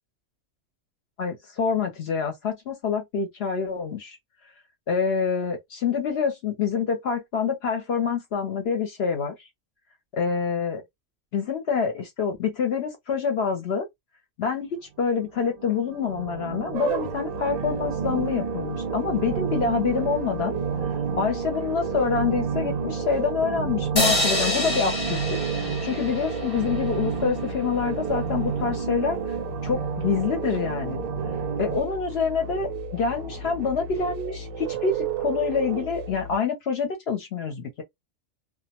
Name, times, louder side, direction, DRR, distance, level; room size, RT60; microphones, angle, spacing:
voice 1, 1.2-4.2 4.9-9.4 10.1-10.8 11.3-13.9 14.4-20.5 21.2-25.4 25.8-29.2 29.6-31.0 31.6-37.8, left 6 dB, 60° left, 0.8 m, -26 dB
sound 1, 15.4-31.8, right 7 dB, 70° right, 0.3 m, -31 dB
sound 2, 16.7-36.4, right 3 dB, 85° right, 1.0 m, -35 dB
sound 3, 24.0-27.3, left 1 dB, 20° left, 0.8 m, -27 dB
2.2 x 2.0 x 2.8 m
omnidirectional pair, 1.3 m